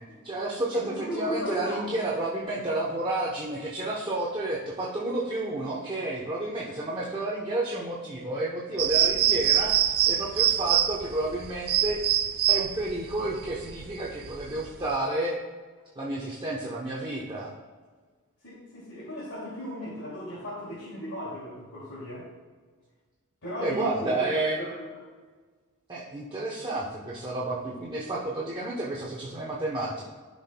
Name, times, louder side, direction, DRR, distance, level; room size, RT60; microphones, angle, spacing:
voice 1, 0.0-9.7 10.1-12.0 12.5-15.4 16.0-17.5 23.6-24.6 25.9-30.1, right 2 dB, 20° right, -5 dB, 0.9 m, -31 dB
voice 2, 0.7-1.7 9.1-9.2 18.4-22.3 23.4-24.2 24.6-24.9 27.5-27.6, left 1 dB, 70° left, -8 dB, 2.5 m, -36 dB
sound 1, 8.8-15.0, right 10 dB, 45° right, 0.4 m, -25 dB
13.5 x 5.9 x 2.2 m, 1.4 s
head